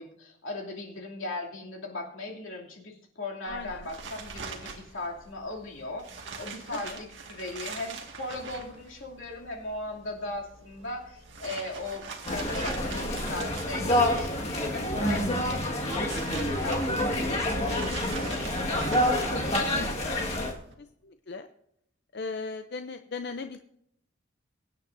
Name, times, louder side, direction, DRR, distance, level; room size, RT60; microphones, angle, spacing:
voice 1, 0.0-20.3, left 2 dB, 85° left, -2 dB, 2.7 m, -38 dB
voice 2, 3.5-3.9 6.7-7.0 21.0-21.5 22.1-23.6, left 4 dB, 55° left, 7 dB, 0.5 m, -37 dB
sound 1, 3.5-20.7, right 5 dB, 70° right, 1.8 m, -44 dB
sound 2, 12.2-20.5, left 1 dB, 35° left, 1.7 m, -28 dB
23.0 x 9.4 x 2.6 m, 0.72 s
head